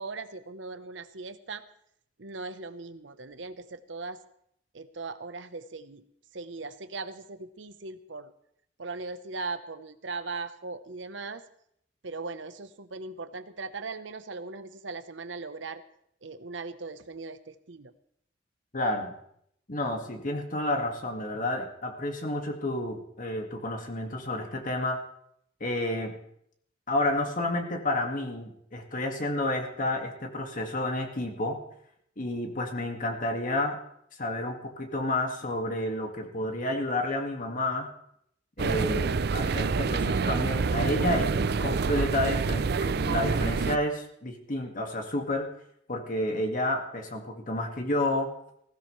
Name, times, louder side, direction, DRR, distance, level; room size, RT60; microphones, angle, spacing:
voice 1, 0.0-1.7 2.2-4.2 4.7-6.0 6.3-8.3 8.8-11.4 12.0-15.8 16.2-17.9, right 3 dB, 75° right, 11 dB, 1.0 m, -39 dB
voice 2, 18.7-19.1 19.7-25.0 25.6-26.1 26.9-31.6 32.2-33.8 34.2-37.9 38.6-45.5 45.9-48.3, left 1 dB, 45° left, 3 dB, 2.0 m, -30 dB
sound 1, 38.6-43.8, right 4 dB, 60° right, 0.5 m, -27 dB
19.5 x 16.0 x 3.3 m, 0.72 s
head